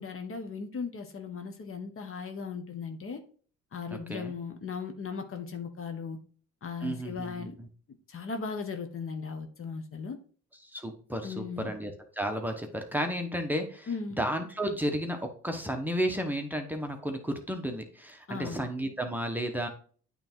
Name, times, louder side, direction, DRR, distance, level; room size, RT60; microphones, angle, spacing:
voice 1, 0.0-3.2 3.7-6.2 6.6-7.5 8.1-10.2 11.2-11.7 13.9-14.2 18.3-18.6, left 5 dB, 45° left, 6 dB, 1.2 m, -37 dB
voice 2, 3.9-4.3 6.8-7.5 10.6-13.9 14.2-15.2 15.4-19.7, equal, 5° right, 4 dB, 1.1 m, -32 dB
8.8 x 3.5 x 4.5 m, 0.43 s
cardioid pair, 90°, 30 cm